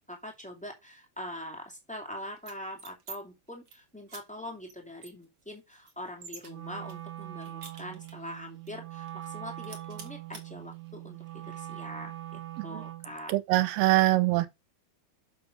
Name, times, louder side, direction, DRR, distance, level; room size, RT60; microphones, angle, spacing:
voice 1, 0.1-13.3, left 1 dB, 5° left, 1.2 m, -43 dB
sound 1, 2.4-3.2 3.5-3.8 4.1-4.2 4.7-4.8 5.0-6.5 6.9-8.3 8.7-8.8 9.1-9.4 9.6-10.4, right 5 dB, 45° right, 1.6 m, -47 dB
Wind instrument woodwind instrument, 6.4-13.2, right 14 dB, 60° right, 1.4 m, -42 dB
voice 2, 13.3-14.5, right 17 dB, 80° right, 2.6 m, -24 dB
7.2 x 5.8 x 5.3 m
omnidirectional pair, 4.7 m